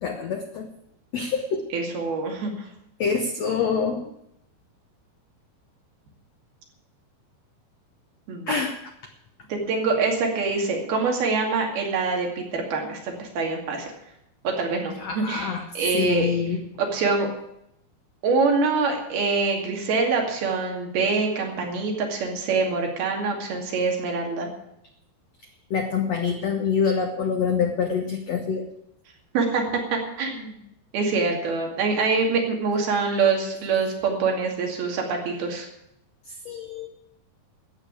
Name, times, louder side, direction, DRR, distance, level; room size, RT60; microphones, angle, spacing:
voice 1, 0.0-0.7 1.1-1.6 3.0-4.1 8.5-8.7 15.0-15.7 15.9-16.6 25.7-28.7 36.4-36.9, left 6 dB, 90° left, 5 dB, 1.4 m, -26 dB
voice 2, 1.7-2.7 8.3-8.5 9.5-13.9 14.4-16.3 16.8-17.3 18.2-24.5 29.3-29.6 29.9-30.6 30.9-35.7, right 4 dB, 70° right, 1 dB, 4.3 m, -25 dB
13.5 x 8.8 x 8.3 m, 0.79 s
omnidirectional pair, 4.7 m